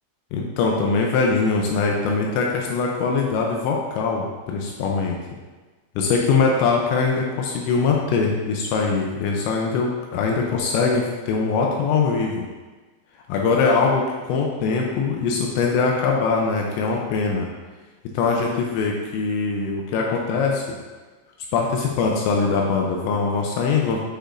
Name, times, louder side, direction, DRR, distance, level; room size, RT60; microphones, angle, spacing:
voice 1, 0.3-5.2 6.0-12.5 13.3-17.5 18.1-20.8 21.5-24.0, left 4 dB, 85° left, 0 dB, 2.7 m, -22 dB
8.7 x 5.1 x 2.5 m, 1.3 s
omnidirectional pair, 5.6 m